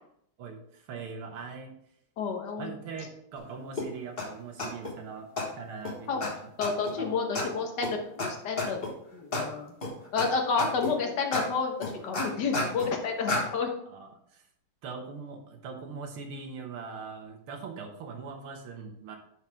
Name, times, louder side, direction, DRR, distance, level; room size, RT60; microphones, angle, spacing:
voice 1, 0.4-1.7 2.6-5.3 5.5-6.5 7.0-7.1 13.9-14.4 14.8-19.2, right 5 dB, 85° right, 4 dB, 2.0 m, -41 dB
voice 2, 2.2-2.7 6.1-6.3 6.6-8.8 9.1-9.7 10.1-13.7, left 5 dB, 60° left, 3 dB, 1.6 m, -30 dB
sound 1, 3.8-3.9 4.2-4.3 4.6-4.9 5.4-5.5 5.8-5.9 6.2-6.3 6.6-6.9 7.3-7.4 7.8-7.9 8.2-8.3 8.6-8.9 9.3-9.4 9.8-10.3 10.6-10.9 11.3-11.4 11.8-12.9 13.3-13.4, left 2 dB, 30° left, 1.4 m, -30 dB
10.5 x 4.8 x 3.5 m, 0.70 s
omnidirectional pair, 2.3 m